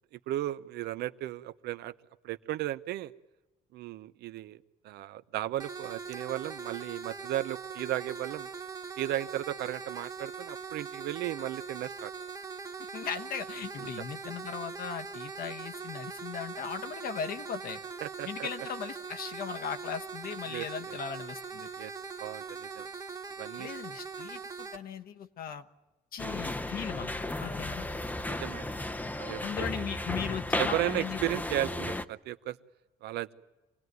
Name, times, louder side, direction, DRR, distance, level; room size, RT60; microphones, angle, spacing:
voice 1, 0.1-1.9 2.2-3.1 3.7-8.5 9.0-12.1 13.8-13.9 18.0-18.5 20.5-21.0 21.8-21.9 22.2-22.9 23.4-23.7 28.2-28.7 29.2-29.4 30.6-32.6 33.0-33.3, right 14 dB, 75° right, 13 dB, 0.8 m, -35 dB
sound 1, 5.6-24.8, right 5 dB, 20° right, 1.5 m, -41 dB
voice 2, 12.9-17.8 18.3-21.7 23.6-25.7 26.1-27.1 27.4-27.9 29.4-31.2, left 7 dB, 60° left, 7 dB, 1.3 m, -38 dB
sound 2, 26.2-32.1, left 1 dB, 10° left, 0.7 m, -34 dB
26.0 x 17.5 x 9.5 m, 1.1 s
cardioid pair, 110°, 17 cm